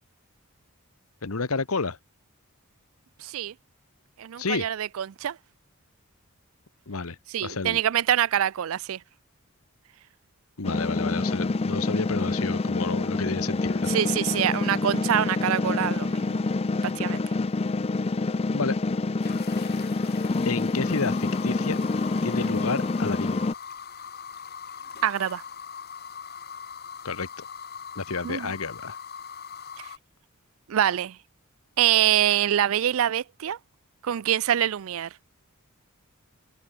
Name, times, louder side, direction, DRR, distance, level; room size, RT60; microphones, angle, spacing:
voice 1, 1.2-2.0 4.4-4.7 6.9-7.8 10.6-13.9 18.5-18.7 20.4-21.8 22.2-23.4 27.0-27.5 27.9-29.0, left 4 dB, 75° left, 1.3 m, -30 dB
voice 2, 3.2-3.5 4.2-5.4 7.3-9.0 13.9-16.4 16.8-17.2 25.0-25.4 28.2-28.5 30.7-31.2 31.8-33.6 34.0-35.1, right 10 dB, 65° right, 0.4 m, -25 dB
sound 1, 10.6-23.5, left 3 dB, 25° left, 0.4 m, -27 dB
sound 2, 19.2-30.0, left 7 dB, 45° left, 3.5 m, -41 dB
head